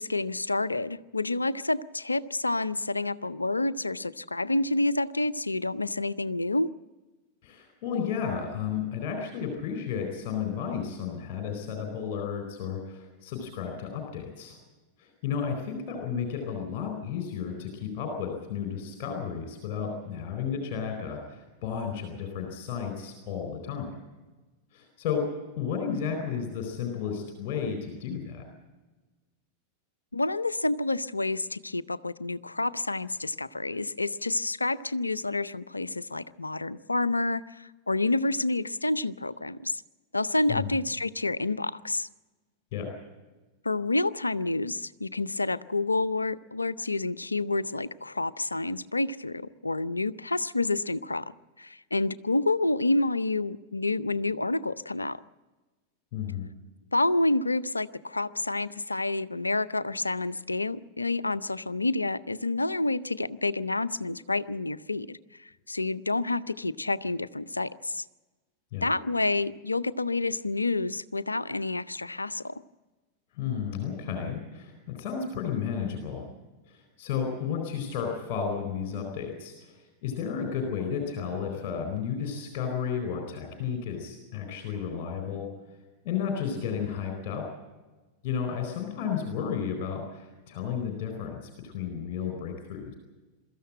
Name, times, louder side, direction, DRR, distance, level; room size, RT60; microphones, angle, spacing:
voice 1, 0.0-6.7 30.1-39.8 40.1-42.1 43.6-51.3 51.6-55.2 56.9-68.0 68.8-72.5, left 2 dB, 80° left, 18 dB, 0.6 m, -29 dB
voice 2, 7.4-14.6 15.0-23.9 24.7-25.2 25.6-28.4 40.5-40.7 42.7-42.9 56.1-56.5 68.7-68.9 73.3-76.3 76.7-85.5 86.0-87.4 88.2-92.9, left 7 dB, 45° left, 4 dB, 4.3 m, -33 dB
23.5 x 14.0 x 8.8 m, 1.2 s
figure-of-eight pair, 90°, 0 cm